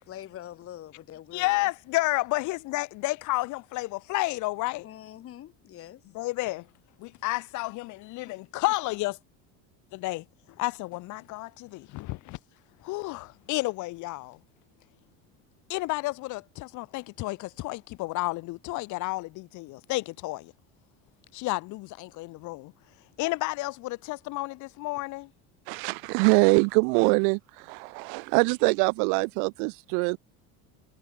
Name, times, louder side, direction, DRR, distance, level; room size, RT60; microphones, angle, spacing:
voice 1, 0.1-1.7 4.8-6.0 8.3-8.4, left 12 dB, 40° left, 2.9 m, -44 dB
voice 2, 1.3-4.9 6.1-6.7 7.0-9.2 9.9-12.4 12.8-14.4 15.7-20.5 21.3-22.7 23.0-25.3, left 21 dB, 60° left, 1.5 m, -31 dB
voice 3, 25.7-27.4 27.7-30.2, right 40 dB or more, 75° right, 0.7 m, -23 dB
cardioid pair, 140°, 34 cm